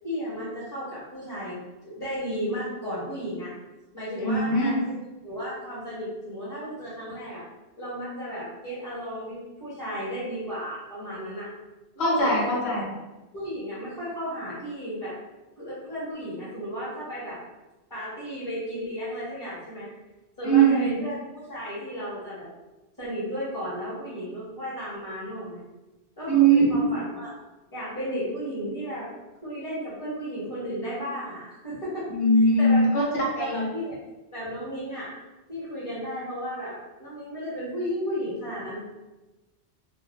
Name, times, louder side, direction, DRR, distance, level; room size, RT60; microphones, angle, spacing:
voice 1, 0.0-1.6 1.8-3.5 3.9-4.9 5.2-7.4 7.8-11.5 11.9-12.9 13.3-15.2 15.6-17.4 17.9-19.9 20.4-22.5 23.0-25.6 26.2-27.3 27.7-29.1 29.4-32.0 32.6-33.0 33.4-34.0 34.3-35.1 35.5-38.8, equal, 20° left, -12 dB, 1.1 m, -34 dB
voice 2, 4.2-4.8 12.0-12.8 20.4-20.9 26.3-26.6 32.1-33.0 33.4-33.7, right 3 dB, 80° left, -4 dB, 1.1 m, -20 dB
2.5 x 2.0 x 3.0 m, 1.1 s
omnidirectional pair, 1.1 m